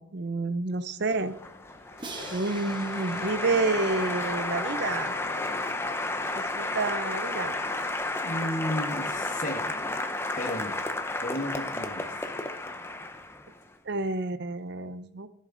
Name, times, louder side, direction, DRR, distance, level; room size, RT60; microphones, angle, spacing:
voice 1, 0.0-1.3 2.3-5.1 6.4-7.5 13.9-15.3, right 3 dB, 55° right, 12 dB, 0.6 m, -29 dB
Race car auto racing / Accelerating revving vroom, 0.9-6.5, left 4 dB, 85° left, 0.9 m, -46 dB
Applause, 1.1-13.6, left 2 dB, 10° left, 0.5 m, -32 dB
Crash cymbal, 2.0-4.9, right 3 dB, 20° right, 0.9 m, -45 dB
voice 2, 8.2-9.8 10.4-10.8 11.2-12.1, left 1 dB, 40° left, 5 dB, 1.2 m, -33 dB
15.0 x 6.5 x 3.9 m, 0.75 s
head